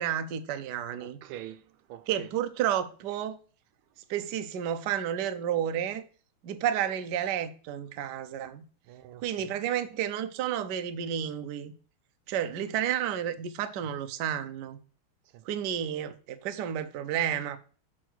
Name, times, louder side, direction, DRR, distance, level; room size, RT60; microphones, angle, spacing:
voice 1, 0.0-1.2 2.1-3.4 4.1-6.0 6.4-8.6 9.2-11.7 12.3-14.8 15.4-17.6, right 9 dB, 65° right, 1.1 m, -31 dB
voice 2, 1.0-2.3 8.8-9.5 15.3-15.4, right 12 dB, 90° right, 1.5 m, -45 dB
6.3 x 4.6 x 6.1 m
omnidirectional pair, 2.4 m